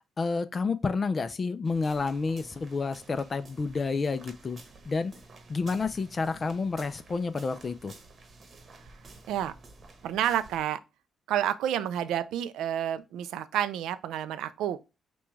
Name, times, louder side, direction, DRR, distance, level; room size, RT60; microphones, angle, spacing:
voice 1, 0.2-4.6 4.9-5.1 5.5-7.9, left 4 dB, 35° left, 0.4 m, -29 dB
sound 1, 1.6-10.6, right 3 dB, 40° right, 1.0 m, -52 dB
voice 2, 10.0-10.8 11.3-14.8, right 11 dB, 85° right, 0.4 m, -29 dB
6.0 x 2.3 x 3.1 m
cardioid pair, 90°, 0 cm